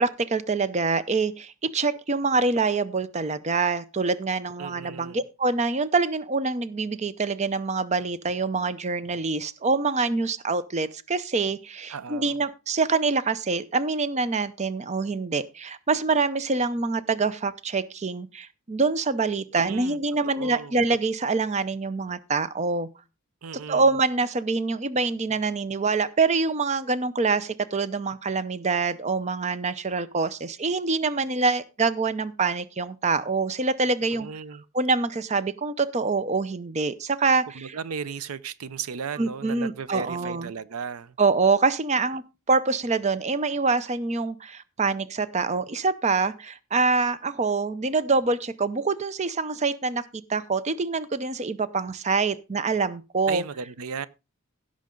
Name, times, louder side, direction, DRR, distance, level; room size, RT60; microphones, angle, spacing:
voice 1, 0.0-22.9 23.7-34.3 34.7-37.7 39.2-40.5 41.2-42.2 42.5-50.0 50.3-53.4, right 4 dB, 30° right, 0.6 m, -25 dB
voice 2, 4.6-5.2 11.9-12.4 19.5-20.0 20.2-20.8 23.4-23.9 34.0-34.6 37.5-41.2 53.3-54.1, right 6 dB, 80° right, 0.6 m, -35 dB
16.5 x 6.3 x 3.8 m
head